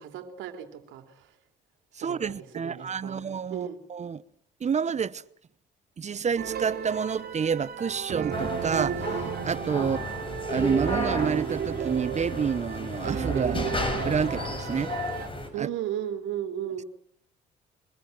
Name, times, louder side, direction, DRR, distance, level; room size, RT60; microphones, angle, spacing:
voice 1, 0.0-1.3 2.0-3.8 9.8-10.1 15.5-16.8, right 10 dB, 75° right, 3.0 m, -36 dB
voice 2, 1.9-4.2 4.6-5.2 6.0-10.0 10.5-14.9 15.6-15.7, right 6 dB, 35° right, 0.9 m, -29 dB
sound 1, 6.4-15.3, right 8 dB, 50° right, 3.0 m, -33 dB
sound 2, 8.3-15.5, left 2 dB, 25° left, 6.9 m, -33 dB
24.5 x 20.0 x 7.8 m
supercardioid pair, 65°, 20 cm